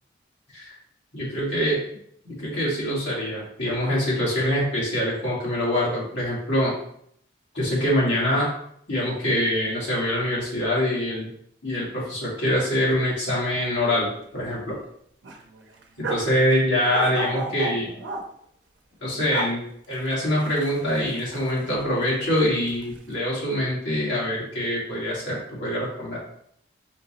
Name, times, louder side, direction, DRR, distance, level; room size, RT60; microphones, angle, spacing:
voice 1, 1.1-1.8 2.2-6.7 7.5-8.5 8.9-11.3 11.6-14.8 16.0-17.9 19.0-26.2, equal, 85° left, -6 dB, 1.9 m, -24 dB
sound 1, 12.6-12.7 13.0-13.1 13.6-14.3 14.6-14.7 15.2-16.3 16.9-18.2 19.1-19.5 19.9-21.9 22.2-23.0, right 2 dB, 90° right, 0.7 m, -33 dB
4.3 x 2.9 x 4.2 m, 0.67 s
head